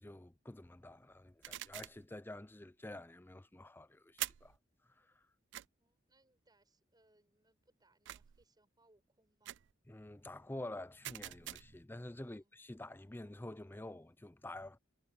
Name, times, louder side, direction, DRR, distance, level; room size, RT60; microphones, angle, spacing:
voice 1, 0.0-4.6 4.8-5.2 9.9-14.8, left 1 dB, 10° left, 0.5 m, -49 dB
sound 1, 1.4-2.1 4.2-4.6 5.5-5.7 8.1-8.4 9.4-9.7 11.0-11.8, right 15 dB, 60° right, 0.4 m, -44 dB
voice 2, 5.8-9.6 12.2-12.5, right 2 dB, 20° right, 6.2 m, -73 dB
head